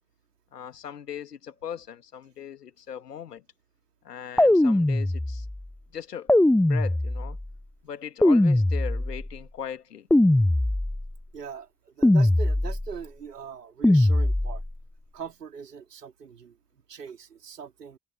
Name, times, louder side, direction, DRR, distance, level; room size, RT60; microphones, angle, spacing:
voice 1, 0.5-3.4 4.0-5.5 5.9-6.3 6.7-7.4 7.8-10.1, left 8 dB, 80° left, 2.7 m, -39 dB
sound 1, 4.4-5.6 6.3-7.5 8.2-9.3 10.1-11.1 12.0-13.0 13.8-14.7, left 1 dB, 5° left, 0.6 m, -21 dB
voice 2, 11.3-14.6 15.1-16.6 16.9-18.0, right 6 dB, 80° right, 4.1 m, -41 dB
figure-of-eight pair, 40°, 47 cm